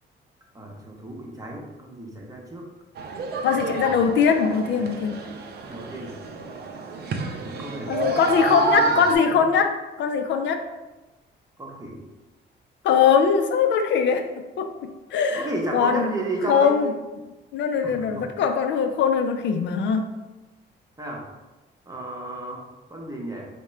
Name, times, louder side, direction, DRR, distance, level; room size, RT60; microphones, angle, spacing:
voice 1, 0.5-2.7 3.6-4.0 5.7-6.2 7.3-9.5 11.6-12.0 15.3-16.9 17.8-18.3 21.0-21.2 21.9-22.6 22.9-23.5, right 2 dB, 15° right, -1 dB, 0.8 m, -33 dB
sound 1, 3.0-9.1, right 4 dB, 55° right, 0.5 m, -29 dB
voice 2, 3.4-5.1 7.9-9.7 10.0-10.6 12.8-14.2 14.6-16.1 16.5-16.9 17.5-20.0, left 6 dB, 65° left, 6 dB, 0.4 m, -21 dB
3.6 x 2.1 x 4.2 m, 1.1 s
cardioid pair, 90°, 20 cm